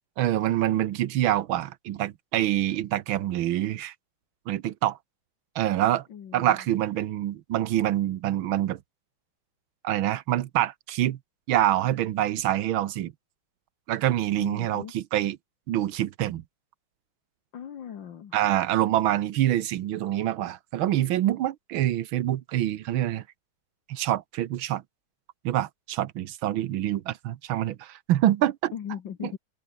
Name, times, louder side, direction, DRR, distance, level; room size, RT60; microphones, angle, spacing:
voice 1, 0.2-3.9 4.5-5.0 5.5-6.1 6.3-8.8 9.8-11.2 11.5-13.1 13.9-15.4 15.7-16.4 18.3-23.2 23.9-24.8 25.4-28.7 29.2-29.3, right 13 dB, 90° right, 1.7 m, -26 dB
voice 2, 6.1-6.7 14.4-14.9 17.5-18.4 28.7-29.4, left 8 dB, 70° left, 2.2 m, -39 dB
open air
omnidirectional pair, 2.1 m